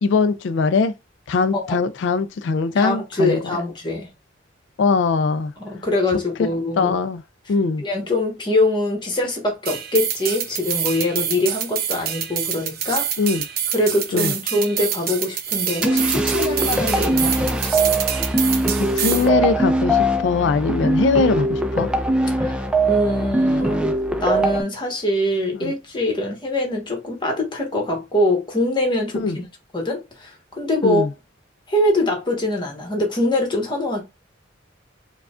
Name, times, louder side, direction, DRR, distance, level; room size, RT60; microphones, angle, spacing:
voice 1, 0.0-0.9 1.3-3.6 4.8-5.5 6.4-6.5 6.8-7.2 7.5-7.8 13.2-13.4 14.1-14.3 18.8-21.9 25.6-25.7 29.1-29.4 30.8-31.1, left 4 dB, 65° left, 0.3 m, -21 dB
voice 2, 2.7-4.1 5.6-6.9 7.8-13.1 13.7-17.9 22.4-22.6 22.9-23.9 24.2-29.4 29.7-31.1 31.7-34.0, left 1 dB, 25° left, 1.2 m, -23 dB
sound 1, 9.7-19.3, right 9 dB, 50° right, 0.6 m, -26 dB
sound 2, 15.8-24.6, right 1 dB, 5° right, 0.4 m, -21 dB
4.7 x 2.3 x 2.4 m
head